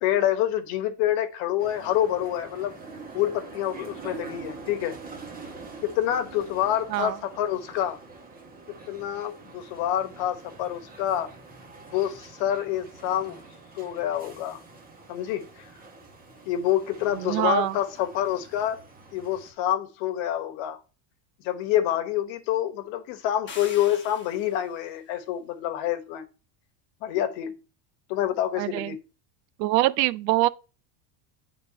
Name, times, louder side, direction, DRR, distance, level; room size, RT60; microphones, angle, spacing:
voice 1, 0.0-2.7 3.1-5.0 5.8-8.0 8.9-11.3 11.9-13.4 13.8-14.6 15.1-15.6 16.5-18.8 19.1-20.8 21.4-26.2 27.0-27.6 28.1-29.0, left 11 dB, 60° left, 1.2 m, -27 dB
sound 1, 1.6-19.5, right 3 dB, 15° right, 1.4 m, -45 dB
voice 2, 17.2-17.7 28.6-28.9 29.6-30.5, right 17 dB, 85° right, 0.6 m, -24 dB
sound 2, 23.5-24.7, left 4 dB, 20° left, 1.3 m, -43 dB
9.7 x 3.7 x 2.8 m
supercardioid pair, 125°, 50 cm